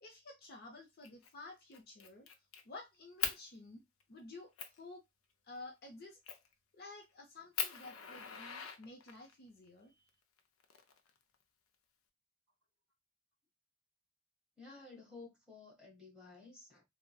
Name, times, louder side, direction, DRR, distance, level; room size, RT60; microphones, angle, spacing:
voice 1, 0.0-2.3 2.6-3.8 4.1-5.0 5.4-6.2 6.7-10.0, left 2 dB, 45° left, 0.6 m, -52 dB
Fire, 1.0-1.3 1.7-2.6 3.2-3.4 4.0-4.1 4.6-4.8 6.3-6.5 7.0-7.1 7.5-9.3 10.4-11.3, left 7 dB, 85° left, 0.5 m, -40 dB
voice 2, 14.6-16.8, left 3 dB, 5° right, 1.6 m, -54 dB
3.9 x 2.1 x 2.3 m
head